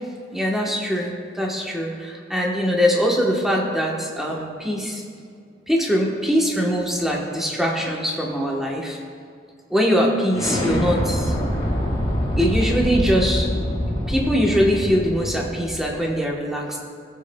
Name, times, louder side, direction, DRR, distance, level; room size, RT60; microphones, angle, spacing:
voice 1, 0.3-5.0 5.7-9.0 9.7-11.3 12.4-13.5 14.1-16.8, equal, ahead, -2 dB, 1.1 m, -22 dB
Explosion, 10.3-15.9, equal, 20° left, 1.9 m, -25 dB
17.5 x 7.5 x 2.3 m, 2.2 s
head